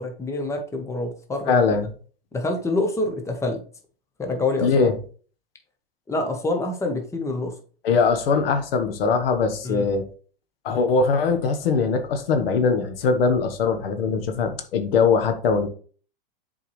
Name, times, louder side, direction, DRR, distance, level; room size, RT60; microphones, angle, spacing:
voice 1, 0.0-1.8 2.3-3.6 4.2-4.9 6.1-7.6 9.6-9.9, left 2 dB, 10° left, 1.1 m, -26 dB
voice 2, 1.5-1.9 4.6-4.9 7.8-10.1 10.6-15.7, left 5 dB, 75° left, 1.2 m, -21 dB
7.2 x 4.6 x 3.2 m
hypercardioid pair, 130°, 29 cm